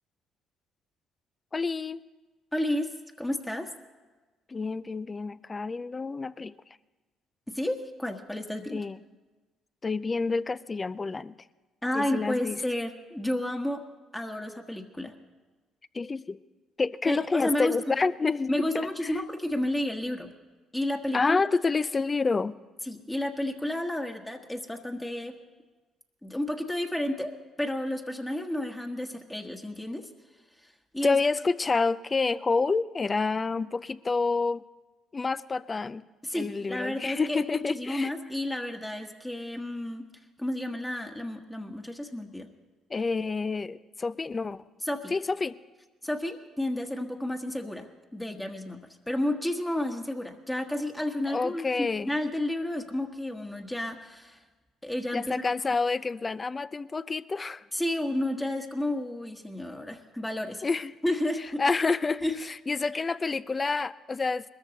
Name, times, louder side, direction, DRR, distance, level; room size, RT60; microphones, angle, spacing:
voice 1, 1.5-2.0 4.5-6.5 8.7-9.0 9.8-11.3 11.9-12.6 15.9-16.4 16.8-18.7 19.0-19.2 21.1-22.6 31.0-34.6 35.1-36.0 36.3-38.1 42.9-44.6 45.1-45.6 51.3-52.1 55.1-57.7 60.6-60.9 61.6-64.4, left 4 dB, 30° left, 17 dB, 0.5 m, -28 dB
voice 2, 2.5-2.9 3.2-3.7 7.5-8.8 11.8-13.8 14.1-15.1 17.0-17.8 18.5-20.3 20.7-21.4 22.9-25.3 26.2-30.1 30.6-31.2 36.2-40.1 40.4-42.5 44.8-45.1 46.0-54.4 54.8-55.2 57.7-60.7 61.0-61.6 62.2-62.4 62.9-63.0, left 1 dB, 10° left, 3 dB, 1.4 m, -31 dB
20.5 x 13.5 x 4.0 m, 1.2 s
supercardioid pair, 60°, 0 cm